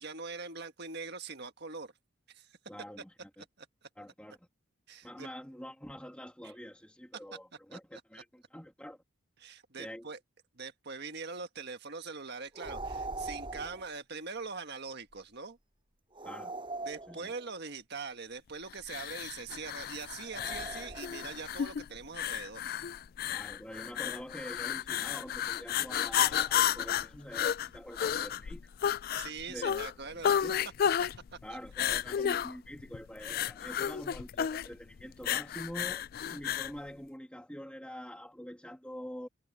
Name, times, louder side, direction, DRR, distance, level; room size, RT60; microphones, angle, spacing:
voice 1, 0.0-1.9 2.3-2.6 3.6-3.7 4.9-5.3 7.3-7.4 7.7-8.0 9.4-10.2 10.6-15.6 16.8-22.7 29.2-30.4 31.3-31.6, right 4 dB, 50° right, 1.6 m, -42 dB
voice 2, 2.7-3.4 4.0-4.5 5.0-9.0 9.8-10.1 16.2-16.5 17.1-17.3 23.3-28.7 29.5-30.6 31.4-36.0 36.3-39.3, equal, 5° left, 2.0 m, -45 dB
sound 1, 12.5-13.9 16.1-17.6 20.3-21.4, right 2 dB, 25° right, 6.4 m, -41 dB
sound 2, 18.9-36.8, left 9 dB, 45° left, 0.3 m, -32 dB
head